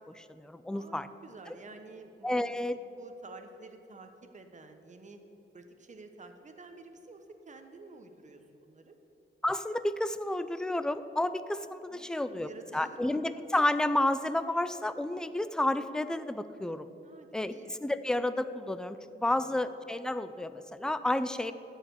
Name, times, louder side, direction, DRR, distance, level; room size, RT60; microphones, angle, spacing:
voice 1, 0.1-1.1 2.2-2.8 9.4-12.5 12.7-16.9 17.3-17.5 17.8-21.5, left 1 dB, 5° left, 12 dB, 0.3 m, -31 dB
voice 2, 0.7-2.6 3.0-5.2 5.5-9.0 11.9-13.0 17.0-17.8 19.3-19.7, right 3 dB, 35° right, 6 dB, 0.9 m, -51 dB
13.5 x 4.9 x 7.9 m, 3.0 s
wide cardioid pair, 140°, 21 cm